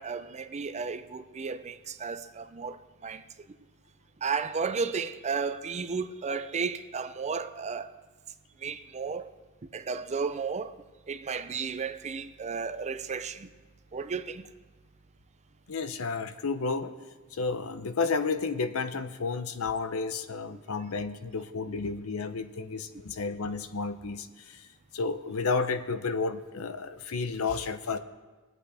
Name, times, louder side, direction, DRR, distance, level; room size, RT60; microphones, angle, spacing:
voice 1, 0.0-3.2 4.2-7.9 8.6-9.3 9.7-10.7 11.1-13.5 13.9-14.4, right 5 dB, 30° right, 0.5 m, -33 dB
voice 2, 15.7-16.9 17.3-24.7 24.9-28.0, left 4 dB, 75° left, 0.7 m, -31 dB
21.5 x 8.3 x 3.4 m
head